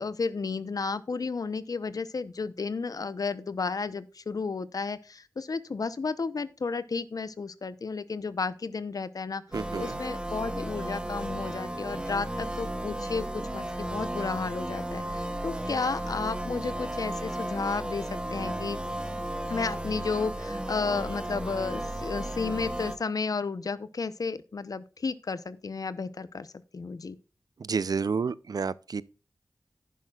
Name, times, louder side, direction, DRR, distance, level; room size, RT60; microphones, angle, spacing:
voice 1, 0.0-9.4 9.8-18.8 19.5-26.5 26.7-27.2, left 4 dB, 70° left, 0.8 m, -32 dB
sound 1, 9.5-23.0, right 1 dB, 15° right, 1.3 m, -34 dB
voice 2, 9.5-10.0 27.6-29.0, right 5 dB, 75° right, 0.5 m, -30 dB
11.0 x 10.0 x 2.4 m
wide cardioid pair, 50°, 7 cm